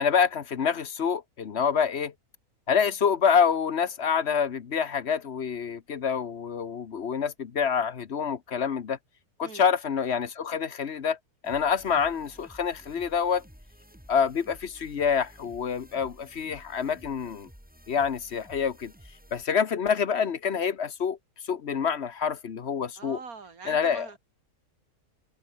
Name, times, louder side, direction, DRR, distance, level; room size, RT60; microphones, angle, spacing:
voice 1, 0.0-2.1 2.7-9.0 9.4-11.2 11.4-13.4 14.1-17.5 17.9-18.9 19.3-21.2 21.4-23.2 23.7-24.1, left 7 dB, 50° left, 1.2 m, -27 dB
Energetic Dance, 11.4-19.4, equal, 5° right, 4.3 m, -52 dB
voice 2, 23.0-24.2, right 5 dB, 80° right, 2.9 m, -43 dB
omnidirectional pair, 1.5 m